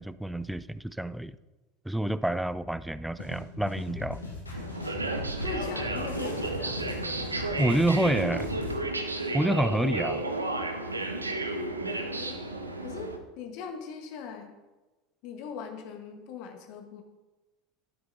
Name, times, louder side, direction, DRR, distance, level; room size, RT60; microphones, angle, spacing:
voice 1, 0.0-1.4 1.9-4.2 7.6-8.5 9.3-10.2, right 1 dB, 5° right, 16 dB, 0.3 m, -28 dB
sound 1, 3.2-8.7, left 2 dB, 85° left, 1.5 m, -39 dB
sound 2, 4.5-13.2, right 2 dB, 90° right, 0.7 m, -32 dB
voice 2, 5.4-6.8 11.8-12.5 12.8-14.5 15.2-17.0, left 6 dB, 55° left, 5 dB, 1.3 m, -40 dB
12.5 x 7.8 x 2.7 m, 1.1 s
figure-of-eight pair, 75°, 0 cm